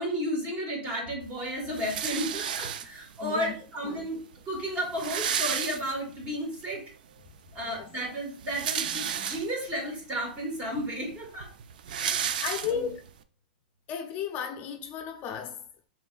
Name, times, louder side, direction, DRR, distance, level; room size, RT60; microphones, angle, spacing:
voice 1, 0.0-4.2 4.5-6.8 7.5-11.5 11.9-12.2 12.7-12.9, equal, 25° right, 1.9 m, -33 dB
sound 1, 1.7-3.2 4.0-4.1 4.3-4.4 4.7-6.3 6.7-6.8 8.2-9.7 10.4-10.5 10.7-13.1, right 8 dB, 70° right, 0.4 m, -32 dB
voice 2, 3.2-3.5 3.8-4.0 7.6-7.8 12.4-13.0 13.9-15.9, left 7 dB, 35° left, 0.5 m, -34 dB
5.2 x 3.6 x 2.4 m
hypercardioid pair, 125°, 5 cm